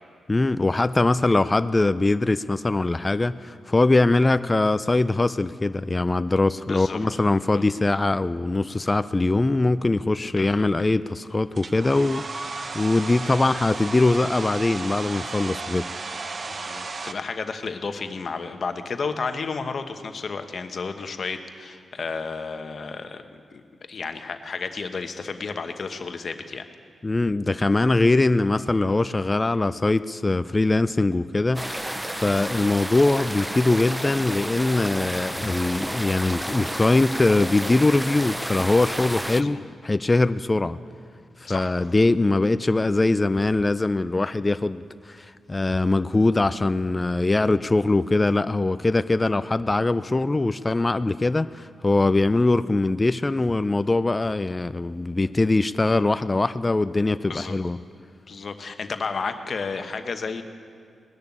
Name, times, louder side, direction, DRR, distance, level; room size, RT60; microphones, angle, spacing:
voice 1, 0.3-15.9 27.0-39.6 39.8-40.8 41.4-57.8, left 2 dB, 30° left, 14 dB, 0.4 m, -22 dB
voice 2, 6.7-7.0 7.5-7.6 10.2-10.7 16.5-23.2 23.5-23.6 23.9-26.7 39.4-39.6 41.4-41.7 57.3-57.6 58.3-60.4, left 4 dB, 60° left, 8 dB, 1.1 m, -32 dB
Domestic sounds home sounds, 11.6-17.1, right 3 dB, 50° right, 0.8 m, -34 dB
sound 1, 31.5-39.4, right 1 dB, 10° right, 0.7 m, -31 dB
19.0 x 6.8 x 9.8 m, 2.2 s
supercardioid pair, 45°, 0 cm